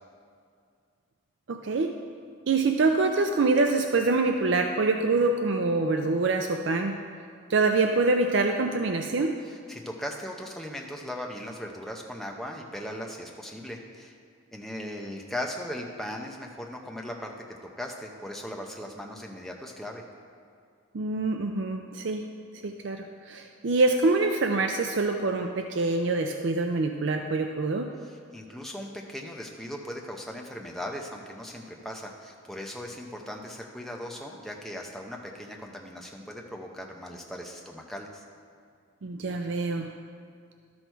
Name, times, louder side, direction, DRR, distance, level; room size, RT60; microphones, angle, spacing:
voice 1, 1.5-1.9 2.5-7.0 7.5-9.3 20.9-22.2 22.6-27.9 39.0-39.9, right 3 dB, 60° right, 4 dB, 0.4 m, -25 dB
voice 2, 9.4-14.1 14.5-17.3 17.6-20.0 28.0-38.2, equal, ahead, 0 dB, 0.7 m, -38 dB
12.5 x 6.3 x 4.5 m, 2.3 s
head